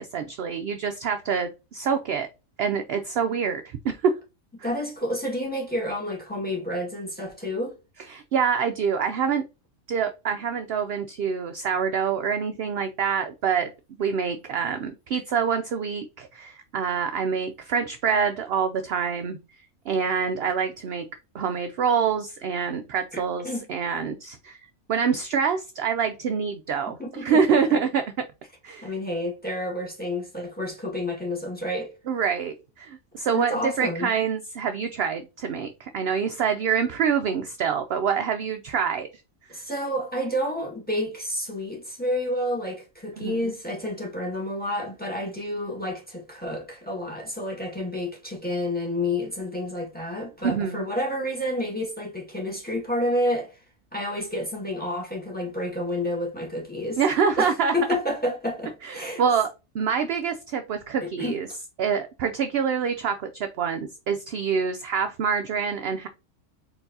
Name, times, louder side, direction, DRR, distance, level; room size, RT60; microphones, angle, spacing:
voice 1, 0.0-2.3 2.6-4.2 8.1-9.4 9.9-13.7 14.0-19.4 19.9-21.1 21.3-24.6 24.9-28.0 28.6-28.9 32.1-39.1 43.2-43.5 50.4-50.9 57.0-57.7 58.8-59.5 59.7-61.5 61.8-66.1, right 6 dB, 65° right, 0.6 m, -26 dB
voice 2, 4.6-7.8 23.1-23.7 27.0-27.6 28.8-31.9 33.3-34.1 39.5-53.6 53.9-57.0 57.4-59.2 61.0-61.4, left 1 dB, 5° left, 1.5 m, -30 dB
4.4 x 3.9 x 2.7 m
omnidirectional pair, 1.4 m